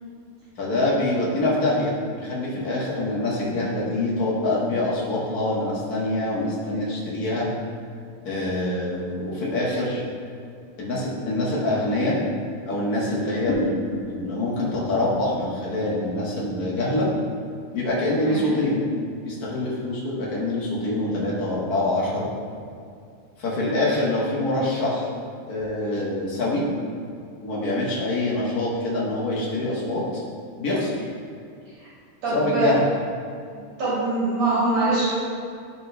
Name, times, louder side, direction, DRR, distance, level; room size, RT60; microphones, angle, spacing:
voice 1, 0.6-7.5 8.2-10.0 10.8-12.2 12.7-17.1 17.7-18.9 19.2-22.3 23.4-25.1 25.5-26.6 27.4-30.2 30.6-31.1 32.3-32.8, left 1 dB, 40° left, -6 dB, 1.7 m, -25 dB
voice 2, 32.2-32.7 33.5-35.1, right 2 dB, 60° right, -11 dB, 3.3 m, -23 dB
12.0 x 4.8 x 3.4 m, 2.3 s
omnidirectional pair, 3.4 m